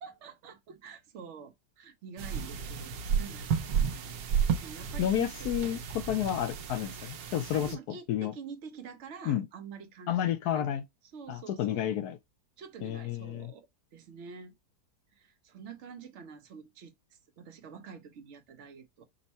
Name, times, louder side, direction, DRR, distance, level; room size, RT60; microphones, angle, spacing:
voice 1, 0.0-4.1 4.6-5.5 7.5-10.7 11.1-12.0 12.6-13.7 13.9-14.5 15.1-19.0, right 6 dB, 55° right, 0.9 m, -47 dB
sound 1, 2.2-7.7, right 7 dB, 70° right, 1.2 m, -32 dB
voice 2, 5.0-8.3 9.3-9.5 10.1-10.8 11.3-12.2 12.8-13.5, left 11 dB, 75° left, 1.1 m, -31 dB
5.4 x 2.1 x 4.1 m
omnidirectional pair, 1.8 m